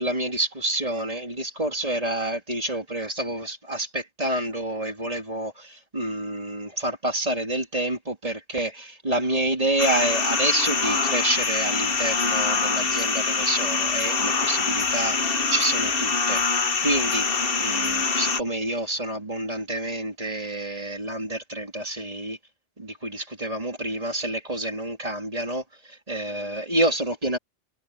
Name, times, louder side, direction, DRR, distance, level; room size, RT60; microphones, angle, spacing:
voice 1, 0.0-17.3 17.6-22.4 22.8-27.4, right 1 dB, 30° right, 3.6 m, -28 dB
sound 1, 9.8-18.4, left 4 dB, 55° left, 1.5 m, -24 dB
omnidirectional pair, 1.2 m